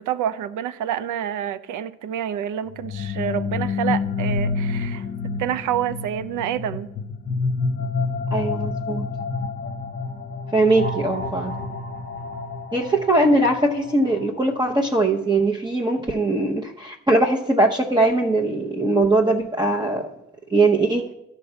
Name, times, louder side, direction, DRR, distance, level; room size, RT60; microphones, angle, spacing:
voice 1, 0.0-6.9, right 10 dB, 80° right, 0.6 m, -28 dB
sound 1, 2.7-14.5, left 4 dB, 40° left, 0.9 m, -28 dB
voice 2, 8.3-9.1 10.5-11.6 12.7-20.1 20.5-21.1, right 2 dB, 15° right, 0.8 m, -20 dB
11.5 x 4.4 x 6.8 m
cardioid pair, 90°, 30 cm